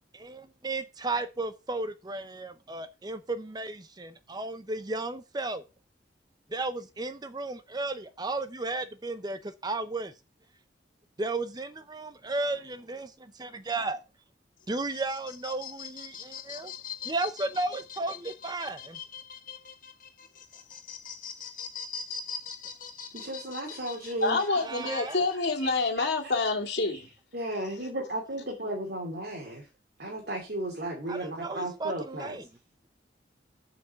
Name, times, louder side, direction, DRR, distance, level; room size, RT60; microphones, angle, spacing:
voice 1, 0.1-5.6 6.5-10.1 11.2-14.0 14.7-16.7 17.0-19.0 24.6-25.3 31.1-32.5, right 2 dB, 25° right, 0.7 m, -34 dB
sound 1, 14.6-25.9, left 6 dB, 50° left, 1.4 m, -42 dB
voice 2, 23.1-24.6 25.4-25.5 26.0-26.1 27.3-29.6 30.0-32.4, right 1 dB, 60° right, 2.8 m, -34 dB
voice 3, 24.2-27.1, left 3 dB, 65° left, 2.3 m, -27 dB
7.7 x 5.9 x 5.7 m
head